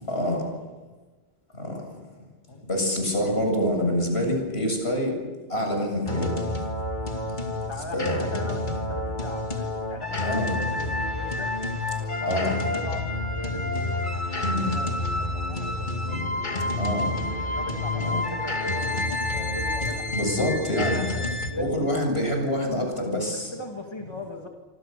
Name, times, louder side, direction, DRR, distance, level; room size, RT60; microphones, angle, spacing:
voice 1, 0.1-0.4 1.6-1.8 2.7-5.1 5.5-6.3 7.4-7.5 7.9-8.2 10.2-10.6 12.3-12.5 14.4-14.7 16.0-16.3 16.6-17.2 17.6-17.7 18.0-18.2 20.1-21.0 21.6-23.5, left 1 dB, 75° left, 3 dB, 7.8 m, -26 dB
sound 1, 6.1-21.5, left 2 dB, 45° left, 2.5 m, -29 dB
voice 2, 7.7-11.6 12.0-16.9 17.5-20.4 20.8-21.8 23.2-24.5, left 2 dB, 25° left, 2 dB, 2.6 m, -40 dB
26.5 x 26.0 x 6.9 m, 1.3 s
omnidirectional pair, 1.1 m